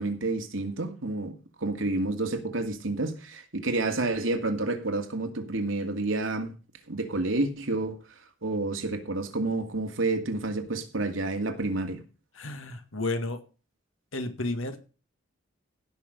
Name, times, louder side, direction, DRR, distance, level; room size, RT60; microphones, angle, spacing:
voice 1, 0.0-6.5 6.9-8.0 8.4-12.0, right 2 dB, 85° right, 2.3 m, -29 dB
voice 2, 12.3-13.4 14.1-14.8, left 2 dB, 90° left, 2.1 m, -32 dB
16.5 x 6.2 x 5.3 m
head